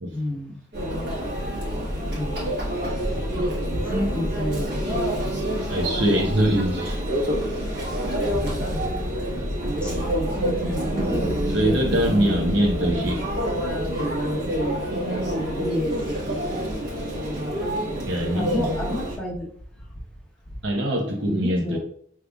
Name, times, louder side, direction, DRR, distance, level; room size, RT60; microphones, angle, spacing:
voice 1, 0.1-0.5 2.1-2.4 3.9-4.8 8.4-8.6 9.8-9.9 10.4-11.7 12.0-12.3 15.6-15.9 18.3-19.4 21.3-21.8, left 1 dB, 5° left, 0.9 m, -30 dB
Conversation / Chatter / Crowd, 0.7-19.2, equal, 60° right, 1.4 m, -27 dB
voice 2, 5.7-7.0 11.5-13.3 18.0-18.8 20.6-21.8, right 1 dB, 80° right, 1.0 m, -23 dB
5.1 x 3.3 x 2.3 m
head